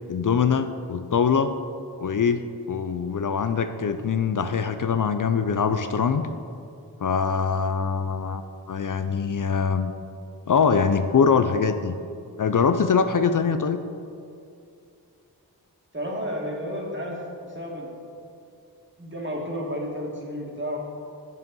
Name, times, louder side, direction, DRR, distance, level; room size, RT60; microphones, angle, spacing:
voice 1, 0.1-1.5 2.0-2.4 2.7-6.2 7.0-9.9 10.5-12.0 12.4-13.8, left 6 dB, 55° left, 9 dB, 0.5 m, -23 dB
voice 2, 15.9-17.9 19.0-20.8, equal, 30° right, -2 dB, 2.3 m, -32 dB
8.0 x 7.6 x 5.5 m, 2.5 s
cardioid pair, 50°, 39 cm